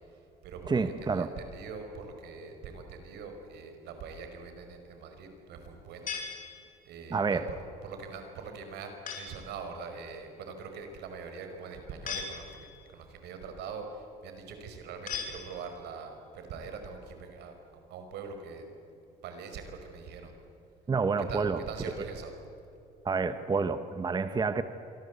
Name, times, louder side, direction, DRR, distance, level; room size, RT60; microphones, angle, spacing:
voice 1, 0.1-6.1 6.8-17.5 17.9-18.7 19.2-20.3 21.3-22.3, right 5 dB, 80° right, 6 dB, 5.2 m, -43 dB
voice 2, 0.7-1.3 7.1-7.4 20.9-21.6 23.0-24.6, right 4 dB, 25° right, 10 dB, 1.1 m, -28 dB
sound 1, 6.1-7.0 9.1-9.5 12.1-12.9 15.1-16.0, left 6 dB, 55° left, 6.4 m, -39 dB
27.0 x 24.5 x 8.3 m, 2.8 s
cardioid pair, 110°, 17 cm